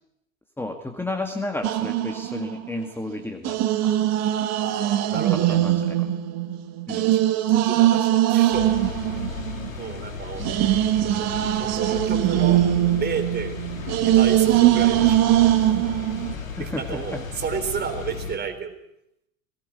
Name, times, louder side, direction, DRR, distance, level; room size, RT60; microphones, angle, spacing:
voice 1, 0.6-4.0 5.3-6.0 6.9-7.1 16.6-17.2, left 2 dB, 5° left, 5 dB, 2.0 m, -32 dB
sound 1, 1.6-2.9 3.4-9.9 10.4-16.3, right 13 dB, 40° right, 1.8 m, -21 dB
voice 2, 4.6-5.6 7.1-8.7 9.8-10.4 11.6-12.6 13.0-13.6 13.9-15.2 16.6-18.7, right 6 dB, 25° right, 8 dB, 3.8 m, -31 dB
sound 2, 8.5-18.4, left 5 dB, 80° left, 3.2 m, -34 dB
20.5 x 17.5 x 9.6 m, 0.79 s
figure-of-eight pair, 90°, 40 cm